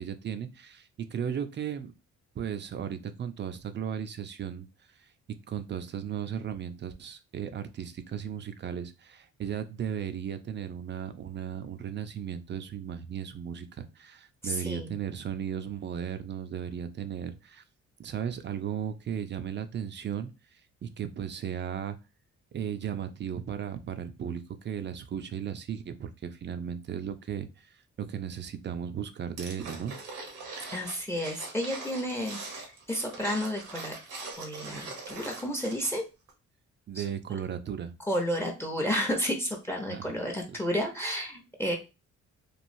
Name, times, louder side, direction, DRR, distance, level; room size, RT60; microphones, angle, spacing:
voice 1, 0.0-1.9 2.3-4.7 4.9-5.1 5.5-17.6 18.0-22.0 22.5-30.0 36.9-37.9 39.9-40.2 40.5-40.6, right 8 dB, 40° right, 10 dB, 0.4 m, -36 dB
voice 2, 14.4-14.9 30.7-33.9 34.2-36.0 36.9-37.0 38.1-41.8, equal, 10° left, 3 dB, 0.6 m, -31 dB
sound 1, 29.4-36.0 36.3-36.4, right 3 dB, 90° right, 1.0 m, -42 dB
3.1 x 2.3 x 2.6 m, 0.28 s
cardioid pair, 90°, 30 cm